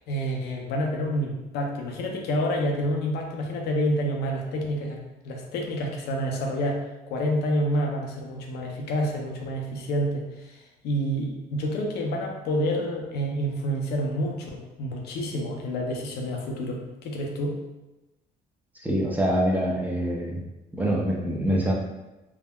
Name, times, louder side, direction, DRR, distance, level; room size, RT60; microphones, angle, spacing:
voice 1, 0.1-17.5, equal, 75° left, 1 dB, 0.6 m, -28 dB
voice 2, 18.8-20.4 20.7-21.7, equal, 10° right, -3 dB, 0.5 m, -25 dB
3.4 x 2.1 x 2.2 m, 1.0 s
cardioid pair, 110°, 17 cm